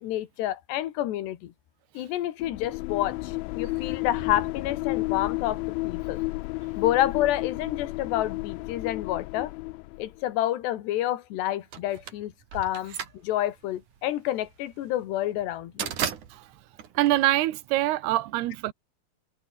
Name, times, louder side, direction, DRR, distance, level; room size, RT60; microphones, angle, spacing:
voice 1, 0.0-1.5 2.0-6.2 6.8-9.5 10.0-13.0 13.2-15.9, left 13 dB, 70° left, 3.7 m, -29 dB
sound 1, 2.4-10.2, left 25 dB, 85° left, 2.9 m, -32 dB
sound 2, 11.7-17.9, right 9 dB, 50° right, 3.0 m, -36 dB
voice 2, 17.0-18.7, right 16 dB, 70° right, 3.0 m, -24 dB
omnidirectional pair, 5.2 m